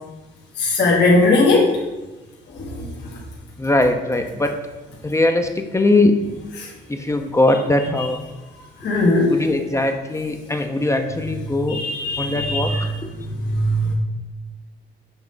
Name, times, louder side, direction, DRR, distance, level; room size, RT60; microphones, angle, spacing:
voice 1, 0.6-1.7 2.6-2.9 6.6-6.7 8.8-9.3 11.7-12.8 13.3-13.9, left 2 dB, 60° left, -3 dB, 1.2 m, -18 dB
voice 2, 3.6-4.6 5.0-6.1 6.9-8.3 9.3-11.8 12.2-12.7 13.0-13.1, left 2 dB, 15° left, 5 dB, 0.6 m, -20 dB
7.1 x 3.2 x 5.1 m, 1.1 s
cardioid pair, 90°, 20 cm